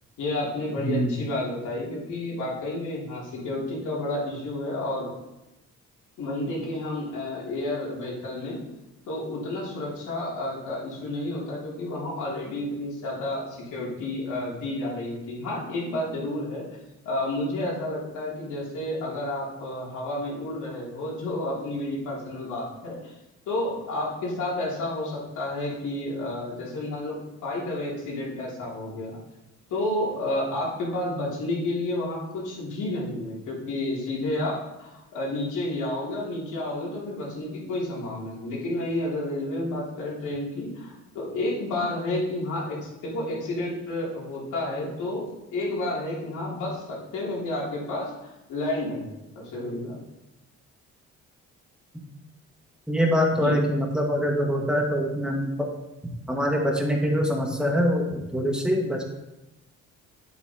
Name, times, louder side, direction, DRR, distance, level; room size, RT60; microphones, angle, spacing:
voice 1, 0.2-5.1 6.2-8.6 9.1-16.6 17.0-23.1 23.5-27.2 27.4-29.2 29.7-45.2 45.5-50.0 53.3-53.6, left 1 dB, 85° left, -5 dB, 3.1 m, -31 dB
voice 2, 0.8-1.2 52.9-55.7 56.3-59.0, equal, 5° right, 0 dB, 1.8 m, -24 dB
8.9 x 8.0 x 3.0 m, 0.94 s
cardioid pair, 90°, 30 cm